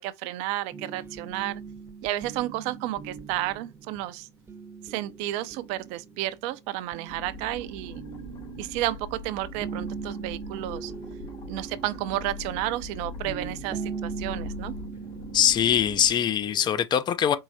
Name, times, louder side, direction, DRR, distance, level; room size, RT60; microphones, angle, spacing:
voice 1, 0.0-1.6 2.0-4.3 4.8-8.0 8.6-10.9 11.5-14.7, right 15 dB, 55° right, 0.5 m, -32 dB
sound 1, 0.7-9.2 9.5-16.8, right 5 dB, 15° right, 0.7 m, -41 dB
sound 2, 7.1-16.1, left 1 dB, 60° left, 2.2 m, -41 dB
voice 2, 15.3-17.4, left 9 dB, 35° left, 0.5 m, -22 dB
4.6 x 3.1 x 2.6 m
hypercardioid pair, 85°, 13 cm